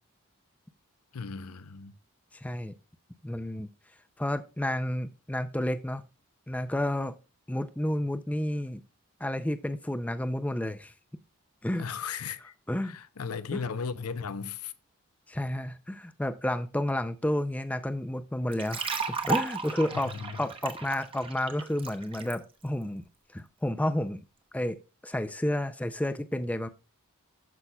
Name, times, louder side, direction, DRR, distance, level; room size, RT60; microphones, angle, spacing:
voice 1, 1.1-1.9 11.7-12.5 12.8-14.7 19.9-20.4, left 5 dB, 85° left, 0.6 m, -36 dB
voice 2, 2.3-2.7 3.2-3.7 4.2-6.0 6.5-7.1 7.5-8.8 9.2-10.9 11.6-11.9 12.7-13.0 13.5-13.6 15.3-23.0 23.3-24.2 24.5-24.8 25.0-26.7, left 1 dB, 5° left, 0.4 m, -31 dB
sound 1, 18.5-22.4, right 5 dB, 25° right, 0.8 m, -34 dB
12.0 x 5.6 x 2.2 m
head